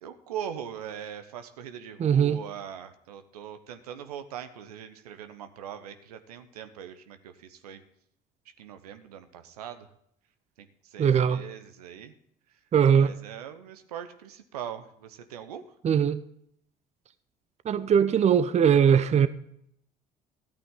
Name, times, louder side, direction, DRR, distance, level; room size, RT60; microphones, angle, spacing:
voice 1, 0.0-7.8 8.6-9.9 10.6-12.1 12.5-12.6 12.9-15.8, right 9 dB, 80° right, 10 dB, 0.9 m, -41 dB
voice 2, 2.0-2.4 11.0-11.4 12.7-13.1 15.8-16.2 17.6-19.3, right 8 dB, 35° right, 15 dB, 0.7 m, -21 dB
13.5 x 8.7 x 3.7 m, 0.70 s
figure-of-eight pair, 55°, 20 cm